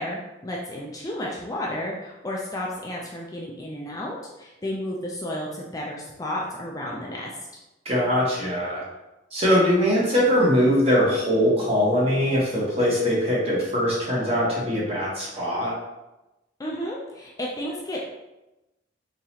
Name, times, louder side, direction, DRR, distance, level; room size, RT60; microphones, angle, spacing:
voice 1, 0.0-7.3 16.6-18.1, left 1 dB, 20° left, -3 dB, 0.4 m, -32 dB
voice 2, 7.8-8.8 9.3-15.8, equal, 35° right, -6 dB, 1.2 m, -22 dB
3.9 x 2.9 x 2.7 m, 0.98 s
head